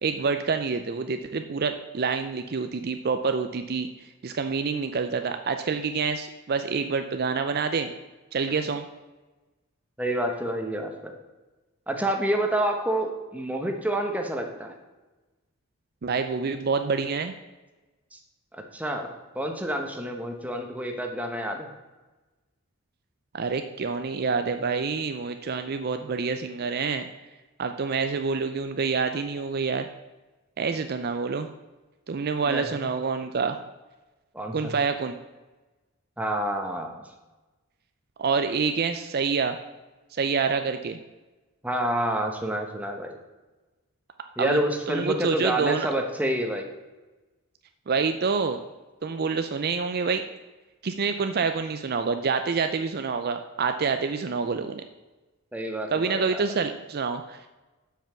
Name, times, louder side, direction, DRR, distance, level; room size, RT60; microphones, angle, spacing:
voice 1, 0.0-3.9 4.2-7.9 8.3-8.9 16.0-17.3 23.3-27.1 27.6-29.9 30.6-31.5 32.1-33.6 34.5-35.2 38.2-39.6 40.1-41.0 44.4-44.6 44.9-45.9 47.9-48.6 49.0-50.2 50.8-54.8 55.9-57.5, right 5 dB, 50° right, 8 dB, 0.5 m, -27 dB
voice 2, 10.0-11.1 11.9-14.7 18.1-18.2 18.5-19.1 19.3-21.7 32.4-32.9 34.3-34.7 36.2-37.0 41.6-43.1 44.4-46.7 55.5-56.4, right 1 dB, 5° right, 3 dB, 1.1 m, -28 dB
7.5 x 5.7 x 7.0 m, 1.2 s
head